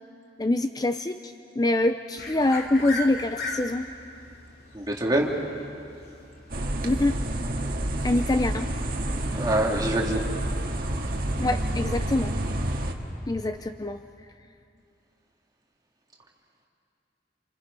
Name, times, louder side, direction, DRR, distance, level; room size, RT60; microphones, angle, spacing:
voice 1, 0.4-3.9 6.8-7.2 8.0-8.7 11.4-12.3 13.3-14.0, left 2 dB, 20° left, 8 dB, 0.5 m, -25 dB
sound 1, 2.2-10.5, left 2 dB, 60° left, 2.6 m, -40 dB
voice 2, 4.7-5.3 9.3-10.2, right 1 dB, 20° right, -2 dB, 2.7 m, -25 dB
sound 2, 6.5-12.9, right 1 dB, 55° right, 1.8 m, -29 dB
28.5 x 27.5 x 5.5 m, 2.5 s
head